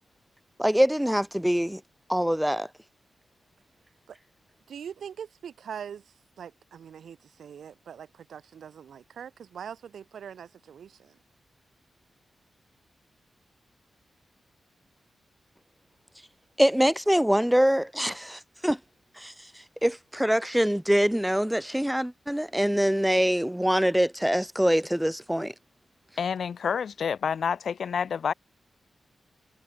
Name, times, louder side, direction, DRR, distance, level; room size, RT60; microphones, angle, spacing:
voice 1, 0.6-1.8 2.1-2.7 16.6-18.8 19.2-19.3 19.8-25.5, equal, 5° right, 3.1 m, -24 dB
voice 2, 4.7-6.0 6.4-11.2, right 8 dB, 85° right, 3.6 m, -42 dB
voice 3, 26.2-28.3, left 7 dB, 70° left, 4.7 m, -28 dB
cardioid pair, 90°, 0 cm